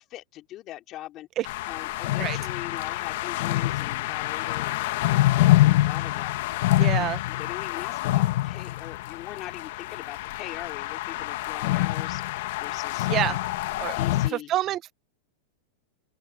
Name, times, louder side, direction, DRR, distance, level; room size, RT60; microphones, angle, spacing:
voice 1, 0.0-1.3 1.7-4.8 5.1-6.3 6.8-12.2 12.6-13.4 13.9-14.5, left 14 dB, 35° left, 2.6 m, -41 dB
sound 1, 1.4-14.3, left 16 dB, 65° left, 1.3 m, -26 dB
voice 2, 6.8-7.2 13.1-13.4 13.8-13.9 14.3-14.9, right 13 dB, 35° right, 0.8 m, -27 dB
open air
supercardioid pair, 140°, 0 cm